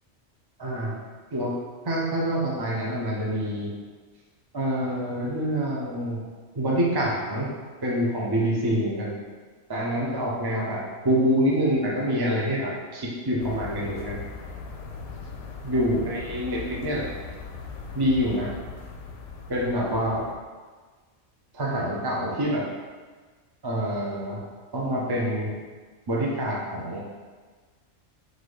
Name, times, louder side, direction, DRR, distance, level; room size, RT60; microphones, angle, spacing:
voice 1, 0.6-0.9 1.3-1.5 1.8-3.7 4.5-6.2 6.5-7.5 7.8-9.1 9.7-14.2 15.6-17.1 17.9-18.5 19.5-20.3 21.5-22.7 23.6-24.4 24.7-25.5 26.1-27.0, equal, 30° right, -4 dB, 0.4 m, -26 dB
sound 1, 13.4-20.4, left 5 dB, 70° left, 0.9 m, -39 dB
3.9 x 2.6 x 4.8 m, 1.4 s
omnidirectional pair, 1.3 m